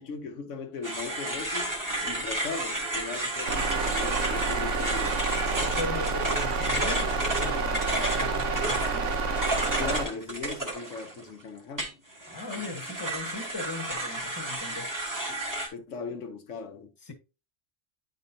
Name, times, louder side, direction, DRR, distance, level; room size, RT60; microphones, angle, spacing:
voice 1, 0.0-1.7 2.0-5.2 9.8-11.9 15.3-15.4 15.7-16.9, left 4 dB, 90° left, 1.3 m, -38 dB
sound 1, 0.8-11.3 11.8-15.7, right 1 dB, 15° right, 1.7 m, -32 dB
sound 2, 3.5-10.0, right 4 dB, 80° right, 1.3 m, -28 dB
voice 2, 5.5-9.2 12.3-14.9 17.0-17.1, left 3 dB, 20° left, 1.2 m, -39 dB
10.0 x 4.2 x 2.8 m
omnidirectional pair, 1.2 m